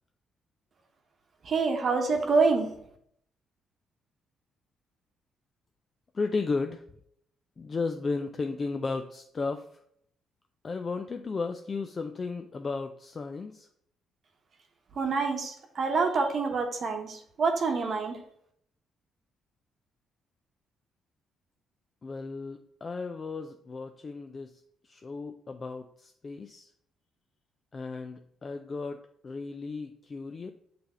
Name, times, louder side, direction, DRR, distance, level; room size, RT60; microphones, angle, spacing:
voice 1, 1.4-2.7 14.9-18.2, right 4 dB, 50° right, 3 dB, 1.0 m, -27 dB
voice 2, 6.1-6.8 7.6-9.7 10.6-13.7 22.0-24.6 24.9-26.7 27.7-29.0 29.2-30.5, left 4 dB, 35° left, 6 dB, 0.4 m, -34 dB
5.9 x 3.4 x 5.4 m, 0.69 s
cardioid pair, 90°, 0 cm